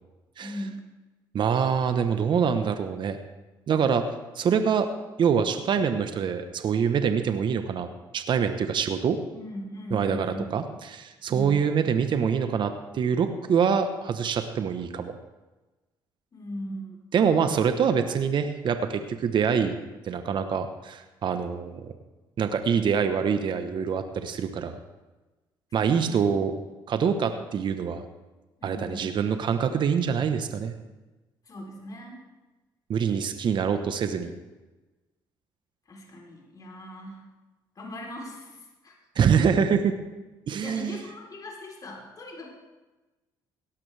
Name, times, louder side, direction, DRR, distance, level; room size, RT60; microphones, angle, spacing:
voice 1, 0.4-0.9 9.3-10.5 11.3-11.7 16.3-17.0 25.8-26.4 28.6-29.3 31.5-32.2 35.9-37.3 37.8-38.9 40.6-42.5, equal, 40° left, -1 dB, 3.8 m, -39 dB
voice 2, 1.3-3.2 3.7-4.0 4.3-4.9 5.2-7.9 8.1-9.2 9.9-10.3 10.5-10.6 10.9-15.1 17.1-19.7 20.1-21.9 22.4-24.8 25.7-26.6 26.9-28.0 28.6-30.7 32.9-34.3 39.2-39.9 40.5-41.0, right 7 dB, 55° right, 8 dB, 1.1 m, -25 dB
17.0 x 12.0 x 3.4 m, 1.1 s
supercardioid pair, 70°, 9 cm